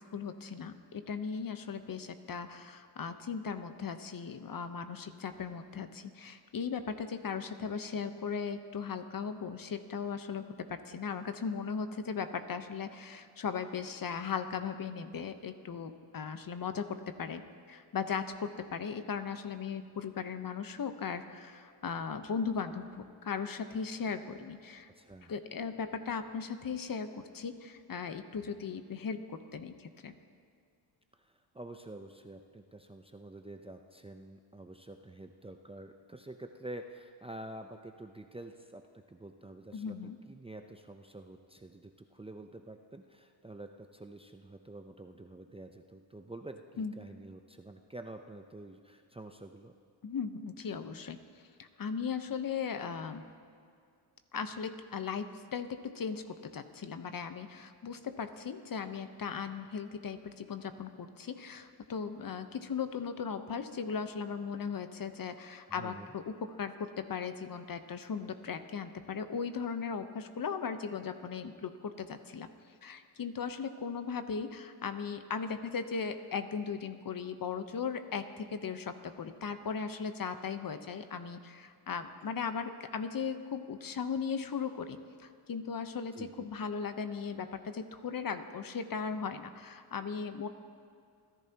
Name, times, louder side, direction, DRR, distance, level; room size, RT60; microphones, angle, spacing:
voice 1, 0.0-17.4 17.7-24.9 25.3-30.1 39.7-40.2 46.8-46.9 50.0-51.2 51.6-53.3 54.3-72.5 72.8-90.5, left 6 dB, 45° left, 9 dB, 1.0 m, -37 dB
voice 2, 24.9-25.3 31.5-40.0 40.3-49.7 65.7-66.1 86.1-86.5, right 1 dB, 10° right, 5 dB, 0.6 m, -48 dB
29.5 x 10.5 x 2.9 m, 2.3 s
cardioid pair, 70°, 49 cm